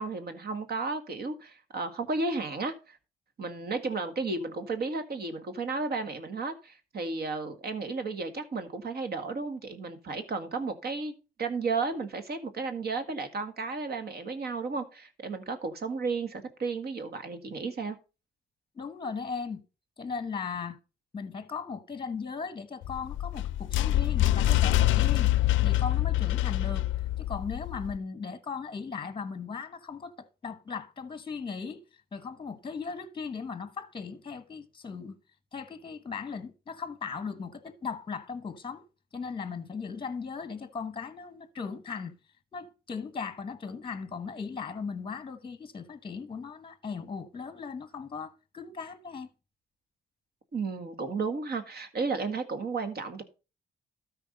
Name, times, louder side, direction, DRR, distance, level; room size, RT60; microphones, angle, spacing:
voice 1, 0.0-3.0 3.4-11.1 11.4-18.0 50.5-53.2, right 4 dB, 55° right, 1.7 m, -33 dB
voice 2, 18.7-19.6 20.0-20.8 21.1-25.3 25.6-26.9 27.2-31.8 32.1-35.2 35.5-38.8 39.1-42.1 42.5-49.3, left 5 dB, 25° left, 1.1 m, -38 dB
sound 1, 22.8-28.0, left 14 dB, 75° left, 0.4 m, -25 dB
13.0 x 4.5 x 5.3 m
cardioid pair, 90°, 20 cm